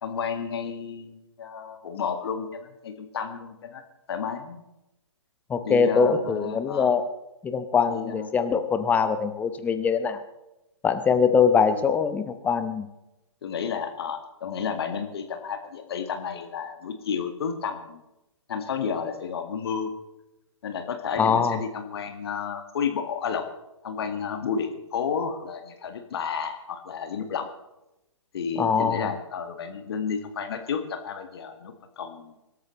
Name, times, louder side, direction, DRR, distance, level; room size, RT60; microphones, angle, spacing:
voice 1, 0.0-3.8 4.1-4.6 5.6-6.9 7.9-8.3 11.3-11.4 11.7-11.9 13.4-18.0 18.5-19.9 20.6-23.4 23.8-27.5 28.3-32.3, left 6 dB, 50° left, 6 dB, 1.8 m, -31 dB
voice 2, 5.5-7.0 7.4-10.2 10.8-12.9 21.2-21.6 28.6-29.1, left 6 dB, 10° left, 9 dB, 0.9 m, -23 dB
25.0 x 13.5 x 3.2 m, 0.93 s
figure-of-eight pair, 130°, 16 cm